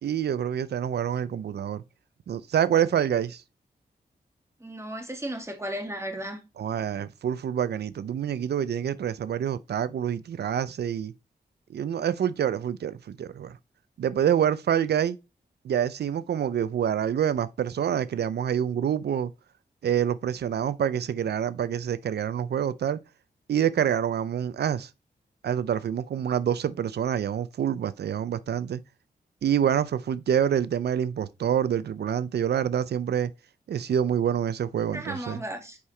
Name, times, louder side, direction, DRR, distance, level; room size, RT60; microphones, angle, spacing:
voice 1, 0.0-1.8 2.3-3.4 6.6-11.1 11.7-13.6 14.0-15.2 15.6-19.3 19.8-23.0 23.5-24.9 25.4-28.8 29.4-33.3 33.7-35.4, right 9 dB, 85° right, 0.5 m, -27 dB
voice 2, 4.6-6.4 34.9-35.8, right 1 dB, 15° right, 2.0 m, -35 dB
8.5 x 4.8 x 3.2 m
cardioid pair, 65°, 17 cm